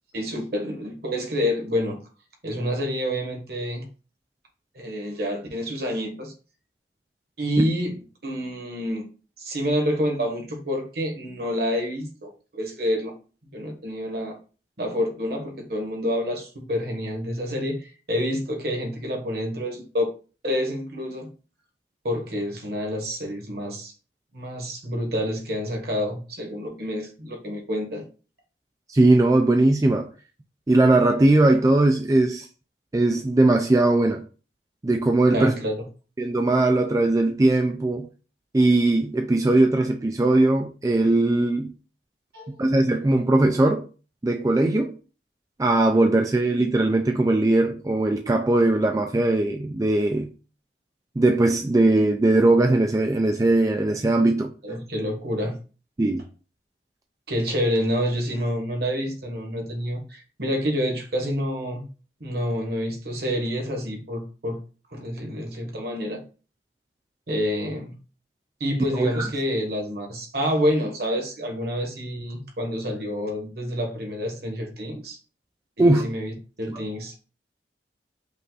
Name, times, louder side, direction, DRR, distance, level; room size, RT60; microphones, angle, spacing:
voice 1, 0.1-2.0 2.4-3.9 4.7-6.3 7.4-7.9 8.2-9.0 9.4-13.1 13.5-14.4 14.8-20.1 20.4-21.3 22.0-23.9 24.3-28.0 35.3-35.7 42.3-42.5 54.6-55.5 57.3-61.9 62.2-64.6 64.9-66.2 67.3-67.9 68.6-75.2 75.8-77.2, equal, 60° right, 1.4 m, -28 dB
voice 2, 28.9-30.1 30.7-32.5 32.9-34.2 34.8-35.6 36.2-38.1 38.5-41.7 42.6-43.9 44.2-44.9 45.6-50.3 51.2-54.5 56.0-56.2 68.9-69.3 75.8-76.1 76.7-76.8, right 2 dB, 20° right, 0.3 m, -20 dB
5.3 x 2.5 x 3.9 m
head